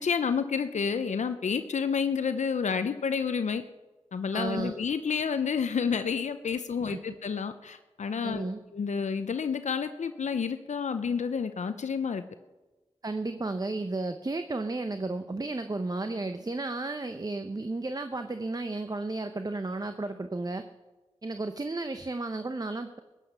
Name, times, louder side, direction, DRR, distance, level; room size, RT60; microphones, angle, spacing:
voice 1, 0.0-3.6 4.1-12.2, left 6 dB, 80° left, 10 dB, 0.6 m, -30 dB
voice 2, 4.3-4.8 6.9-7.0 8.2-8.6 13.0-20.7 21.2-23.0, right 2 dB, 35° right, 8 dB, 0.8 m, -33 dB
15.5 x 9.1 x 6.8 m, 1.2 s
cardioid pair, 45°, 12 cm